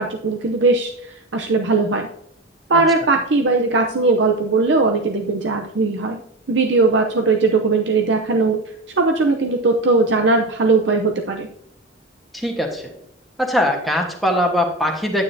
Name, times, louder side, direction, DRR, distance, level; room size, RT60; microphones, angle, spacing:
voice 1, 0.0-2.1 2.7-6.2 6.5-8.6 9.0-11.5, right 3 dB, 75° right, 3 dB, 0.7 m, -19 dB
voice 2, 12.3-12.9 13.4-15.2, equal, ahead, 0 dB, 1.3 m, -21 dB
9.4 x 9.0 x 2.7 m, 0.74 s
head